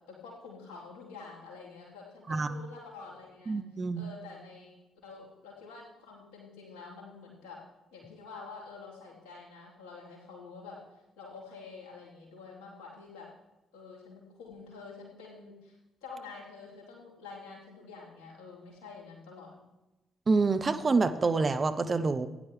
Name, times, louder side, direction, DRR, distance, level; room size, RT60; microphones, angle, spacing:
voice 1, 0.1-3.5 4.0-4.7 5.0-7.6 7.9-10.8 11.2-13.3 13.7-15.8 16.0-19.6, left 4 dB, 65° left, -4 dB, 3.6 m, -47 dB
voice 2, 3.5-4.1 20.3-22.3, right 4 dB, 35° right, 10 dB, 0.7 m, -27 dB
17.0 x 10.5 x 3.3 m, 1.0 s
figure-of-eight pair, 40°, 0 cm